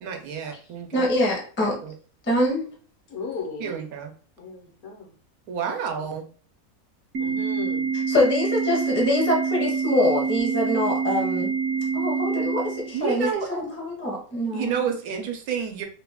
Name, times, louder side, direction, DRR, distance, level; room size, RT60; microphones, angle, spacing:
voice 1, 0.0-1.1 1.6-1.9 3.6-4.1 5.5-6.2 12.9-13.8 14.5-15.8, right 7 dB, 90° right, 3 dB, 1.2 m, -30 dB
voice 2, 0.9-1.8 2.2-2.7 8.1-11.5 11.9-14.8, left 1 dB, 15° left, -1 dB, 0.5 m, -24 dB
voice 3, 3.1-3.8 4.4-5.1 5.7-5.8 7.2-7.9, left 4 dB, 70° left, -1 dB, 1.3 m, -36 dB
Organ, 7.1-13.2, right 5 dB, 60° right, 1.0 m, -26 dB
3.2 x 2.2 x 3.4 m, 0.42 s
omnidirectional pair, 1.5 m